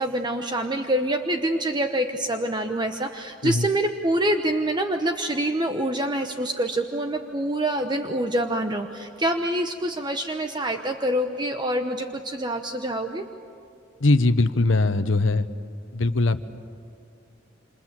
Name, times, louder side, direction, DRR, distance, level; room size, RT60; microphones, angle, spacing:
voice 1, 0.0-13.3, right 1 dB, 25° right, 5 dB, 1.0 m, -26 dB
voice 2, 14.0-15.5 15.9-16.5, left 2 dB, 75° left, 11 dB, 1.0 m, -21 dB
27.5 x 27.0 x 7.6 m, 2.4 s
head